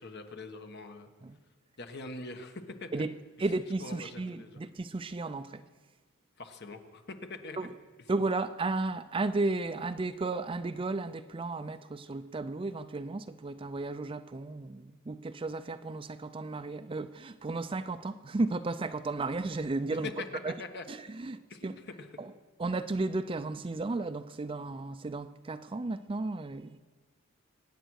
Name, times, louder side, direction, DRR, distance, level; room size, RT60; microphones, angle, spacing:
voice 1, 0.0-1.1 1.8-3.0 3.4-3.5 3.8-4.6 6.4-7.0 7.3-7.7 20.0-20.1 20.6-20.8 21.5-21.7 22.0-22.1, left 3 dB, 50° left, 1.4 m, -43 dB
voice 2, 3.4-5.6 7.6-7.7 8.1-20.1 20.4-20.5 20.9-21.7 22.2-22.3 22.6-26.8, right 3 dB, 25° right, 0.4 m, -34 dB
24.5 x 9.3 x 6.4 m
head